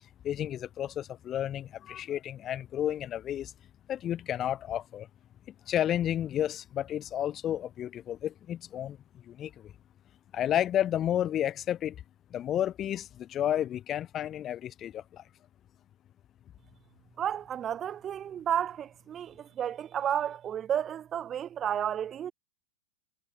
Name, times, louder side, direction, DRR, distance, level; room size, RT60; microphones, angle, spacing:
voice 1, 0.2-3.5 3.9-5.1 5.7-9.0 9.3-9.7 10.3-12.0 12.3-15.2, left 11 dB, 25° left, 2.4 m, -31 dB
voice 2, 17.2-22.3, right 9 dB, 20° right, 2.5 m, -32 dB
supercardioid pair, 160°, 0 cm